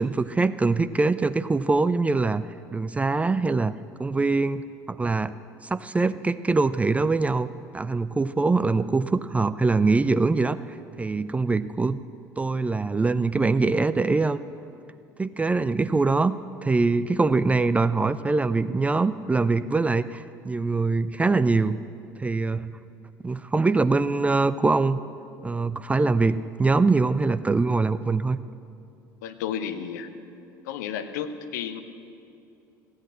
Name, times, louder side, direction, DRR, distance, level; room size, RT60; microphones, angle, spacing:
voice 1, 0.0-2.4 2.7-3.7 4.0-4.6 4.9-5.3 5.6-7.5 7.7-12.0 12.4-14.4 15.2-16.4 16.6-21.8 22.2-22.7 23.2-25.0 25.4-28.4, right 3 dB, 15° right, 14 dB, 0.3 m, -23 dB
voice 2, 29.2-30.1 30.6-31.8, left 8 dB, 65° left, 10 dB, 0.8 m, -32 dB
15.0 x 8.6 x 7.4 m, 2.6 s
figure-of-eight pair, 65°, 10 cm